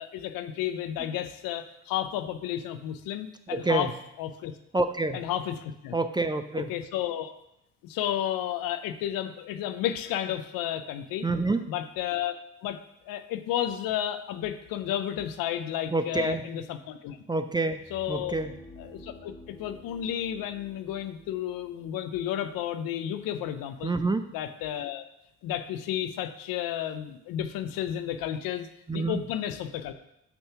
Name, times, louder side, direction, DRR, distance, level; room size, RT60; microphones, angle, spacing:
voice 1, 0.0-3.9 4.2-4.5 5.1-6.0 6.6-7.3 7.8-11.3 11.7-12.4 12.6-17.2 17.9-18.4 18.8-23.9 24.3-25.0 25.4-29.9, left 11 dB, 80° left, 9 dB, 0.6 m, -32 dB
voice 2, 3.5-3.9 4.7-5.2 5.9-6.7 11.2-11.7 15.9-16.4 17.3-17.8 18.1-18.5 23.8-24.3 28.9-29.2, right 3 dB, 15° right, 9 dB, 0.4 m, -27 dB
sound 1, 17.6-23.6, left 1 dB, 5° left, 1.6 m, -51 dB
6.9 x 2.8 x 5.6 m, 0.84 s
supercardioid pair, 65°, 34 cm